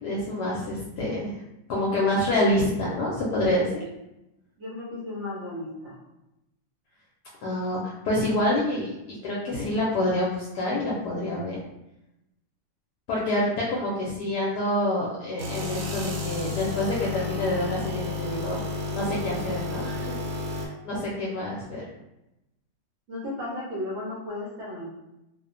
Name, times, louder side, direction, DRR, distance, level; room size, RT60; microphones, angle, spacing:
voice 1, 0.0-1.4 1.7-3.8 7.4-11.6 13.1-18.6 18.9-20.2 20.5-21.8, left 1 dB, 70° left, -5 dB, 1.0 m, -27 dB
voice 2, 4.6-6.0 23.1-24.9, left 2 dB, 65° right, -6 dB, 0.7 m, -34 dB
sound 1, 15.4-20.7, left 3 dB, 90° right, 1.3 m, -31 dB
3.0 x 2.1 x 2.4 m, 0.90 s
omnidirectional pair, 2.0 m